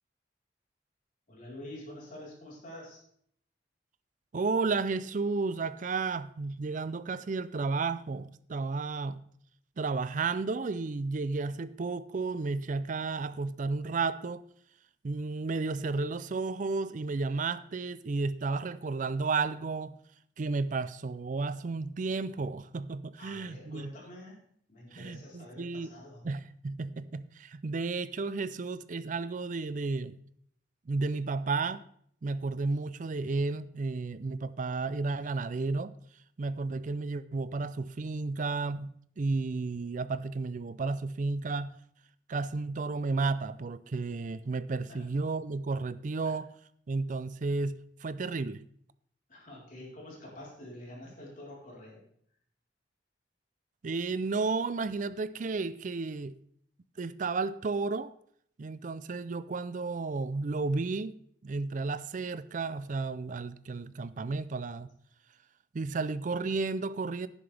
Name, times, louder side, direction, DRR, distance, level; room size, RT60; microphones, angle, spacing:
voice 1, 1.3-3.0 23.2-24.4 24.7-26.2 44.9-45.1 49.3-52.0, left 1 dB, 50° left, 4.1 m, -47 dB
voice 2, 4.3-9.2 9.8-14.5 15.0-20.0 20.4-23.9 24.9-25.9 26.2-30.2 30.9-31.9 32.2-35.9 36.4-41.8 42.3-46.5 46.9-48.6 53.8-56.4 57.0-58.1 58.6-61.2 61.4-64.9 65.7-67.3, right 3 dB, 45° right, 0.4 m, -32 dB
11.0 x 10.5 x 3.4 m
head